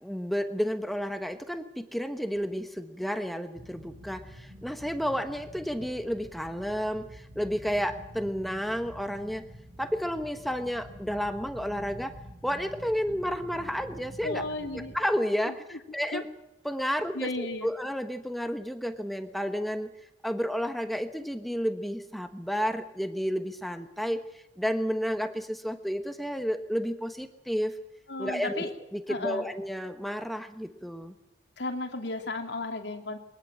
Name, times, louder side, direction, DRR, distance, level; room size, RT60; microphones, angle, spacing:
voice 1, 0.0-9.4 9.8-12.1 12.4-14.4 14.9-16.2 16.6-19.9 20.2-24.2 24.6-27.7 28.2-31.2, equal, ahead, 8 dB, 1.2 m, -31 dB
sound 1, 3.5-15.0, equal, 70° right, 4.8 m, -47 dB
voice 2, 14.2-14.9 15.5-15.8 16.1-16.2 16.8-17.7 28.1-28.7 29.1-29.5 31.6-33.2, left 2 dB, 75° left, 4 dB, 3.0 m, -34 dB
22.5 x 19.5 x 7.6 m, 0.88 s
head